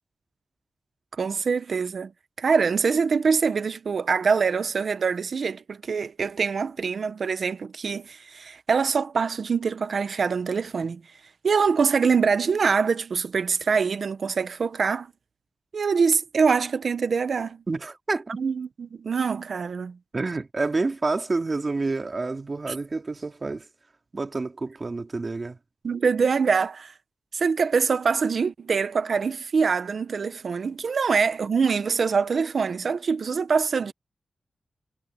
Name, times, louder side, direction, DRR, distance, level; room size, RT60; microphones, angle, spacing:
voice 1, 1.2-2.1 2.4-11.0 11.4-15.1 15.7-17.6 18.4-20.0 22.7-22.8 25.8-26.9 27.3-33.9, right 5 dB, 70° right, 1.2 m, -24 dB
voice 2, 17.7-18.3 20.1-23.6 24.1-25.6, right 3 dB, 40° right, 2.7 m, -28 dB
cardioid pair, 65°, 0 cm